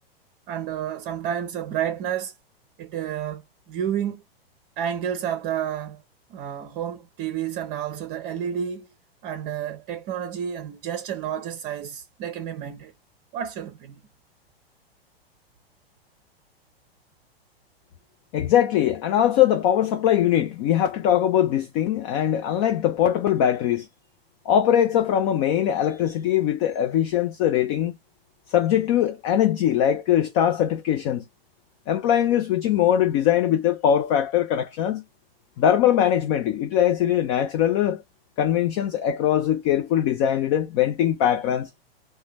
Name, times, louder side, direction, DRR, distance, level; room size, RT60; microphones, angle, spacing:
voice 1, 0.5-2.3 2.8-4.2 4.8-6.0 6.3-8.9 9.2-12.9 13.3-14.0, right 9 dB, 35° right, 0.6 m, -30 dB
voice 2, 18.3-23.9 24.5-27.9 28.5-31.2 31.9-35.0 35.6-38.0 38.4-41.7, left 10 dB, 35° left, 0.4 m, -21 dB
2.7 x 2.2 x 3.3 m
hypercardioid pair, 105°, 31 cm